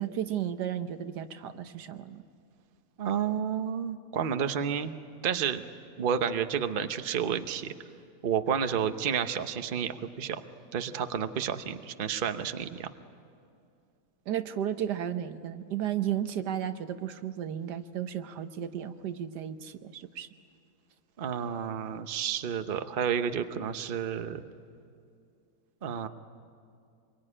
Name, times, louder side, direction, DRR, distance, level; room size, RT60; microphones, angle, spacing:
voice 1, 0.0-2.2 14.3-20.3, right 10 dB, 85° right, 10 dB, 1.5 m, -34 dB
voice 2, 3.0-4.9 5.2-5.6 6.0-7.7 8.2-10.4 10.7-12.9 21.2-24.4 25.8-26.1, right 8 dB, 40° right, 9 dB, 0.9 m, -30 dB
25.5 x 23.0 x 9.9 m, 2.5 s
omnidirectional pair, 1.7 m